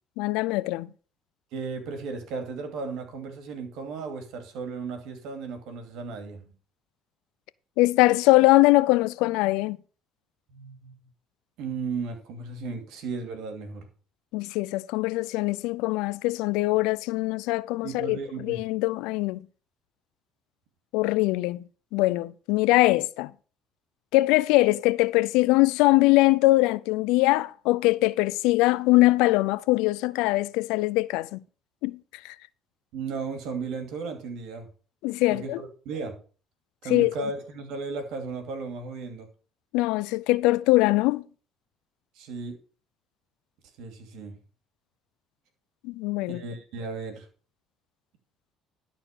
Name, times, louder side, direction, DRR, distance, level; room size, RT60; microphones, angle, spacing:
voice 1, 0.2-0.9 7.8-9.8 14.3-19.4 20.9-21.6 21.9-23.3 24.1-31.4 31.8-32.0 32.2-32.3 35.0-35.6 36.9-37.1 39.7-41.2 45.8-46.4, left 20 dB, 85° left, 0.5 m, -22 dB
voice 2, 1.5-6.5 10.5-10.9 11.6-13.8 17.8-18.6 32.9-34.7 35.3-36.1 36.8-39.3 42.2-42.6 43.8-44.4 46.2-47.3, right 4 dB, 75° right, 2.6 m, -35 dB
12.5 x 4.4 x 6.6 m
supercardioid pair, 85°, 0 cm